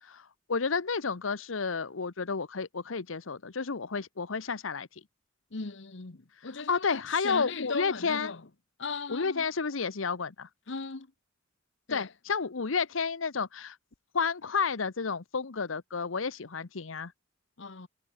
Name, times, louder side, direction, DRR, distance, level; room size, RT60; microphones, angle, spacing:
voice 1, 0.0-4.9 6.7-8.3 9.1-10.5 11.9-13.8 14.1-17.1, left 5 dB, 85° left, 0.9 m, -31 dB
voice 2, 5.5-8.4 8.8-9.5 10.7-11.1 11.9-12.1 17.6-17.9, left 4 dB, 65° left, 1.1 m, -38 dB
head